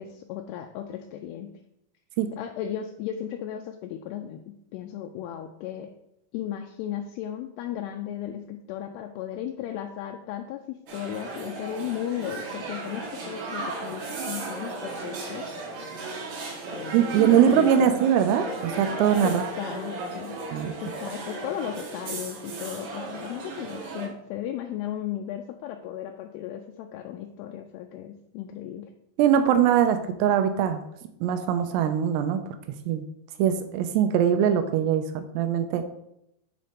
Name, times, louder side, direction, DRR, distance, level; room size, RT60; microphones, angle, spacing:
voice 1, 0.0-1.5 2.4-5.9 6.3-15.5 16.7-18.0 19.2-20.4 20.8-28.9, left 10 dB, 85° left, 4 dB, 2.5 m, -35 dB
sound 1, 10.9-24.1, right 3 dB, 60° right, 2.9 m, -35 dB
voice 2, 16.9-19.5 20.5-20.7 29.2-30.8 31.2-32.4 32.9-33.1 33.4-35.8, right 9 dB, 85° right, 8 dB, 2.7 m, -22 dB
7.8 x 4.1 x 5.0 m, 0.81 s
omnidirectional pair, 4.8 m